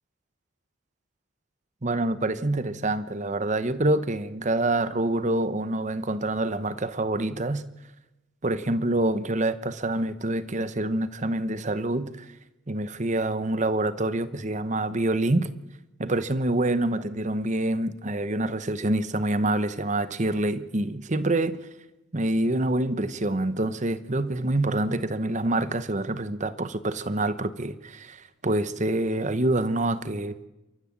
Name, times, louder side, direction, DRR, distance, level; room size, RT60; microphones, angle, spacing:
voice 1, 1.8-7.6 8.4-12.3 12.7-15.5 16.0-21.6 22.1-30.5, right 2 dB, 35° right, 1.0 m, -26 dB
28.5 x 14.0 x 7.5 m
head